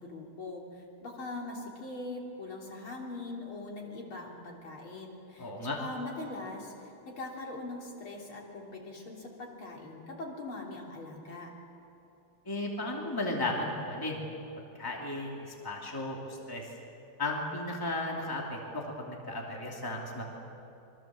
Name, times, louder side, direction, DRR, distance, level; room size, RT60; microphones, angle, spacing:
voice 1, 0.0-11.5, left 2 dB, 70° left, -1 dB, 4.4 m, -42 dB
voice 2, 5.4-5.8 12.5-14.2 14.7-15.4 15.6-16.2 16.5-16.6 17.2-20.3, left 2 dB, 10° left, -1 dB, 2.8 m, -34 dB
26.0 x 24.0 x 7.7 m, 2.9 s
omnidirectional pair, 2.4 m